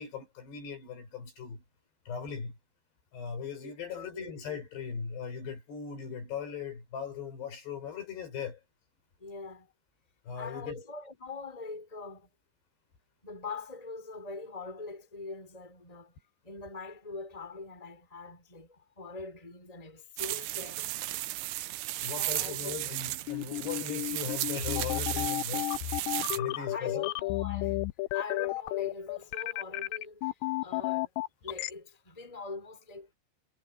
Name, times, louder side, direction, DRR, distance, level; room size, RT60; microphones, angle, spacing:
voice 1, 0.0-1.6 2.1-2.6 3.1-8.6 10.2-10.8 22.0-25.7 26.4-27.1, left 6 dB, 55° left, 7.5 m, -39 dB
voice 2, 3.6-4.3 9.2-9.7 10.4-12.3 13.2-16.2 16.4-20.9 21.5-21.7 22.1-22.8 26.5-31.1 31.4-33.1, left 3 dB, 10° left, 4.5 m, -43 dB
sound 1, 20.2-26.4, right 16 dB, 75° right, 2.5 m, -35 dB
sound 2, 23.3-31.7, left 20 dB, 85° left, 2.5 m, -32 dB
omnidirectional pair, 5.7 m